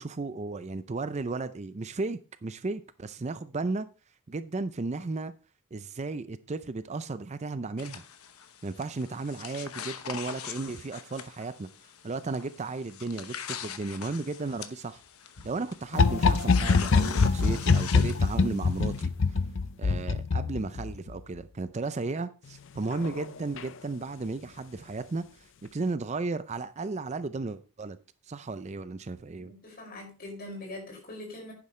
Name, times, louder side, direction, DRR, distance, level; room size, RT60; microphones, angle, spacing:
voice 1, 0.0-3.9 4.3-5.3 5.7-8.0 8.6-11.7 12.0-15.0 15.4-19.1 19.8-28.0 28.3-29.5, right 3 dB, 30° right, 13 dB, 0.5 m, -34 dB
sound 1, 7.8-19.1, left 7 dB, 85° left, 1.0 m, -42 dB
sound 2, 15.9-21.1 22.9-23.2 23.6-23.7, left 4 dB, 60° left, 0.5 m, -24 dB
voice 2, 29.3-31.5, left 1 dB, 45° left, 0 dB, 5.7 m, -42 dB
11.0 x 9.7 x 3.2 m, 0.32 s
head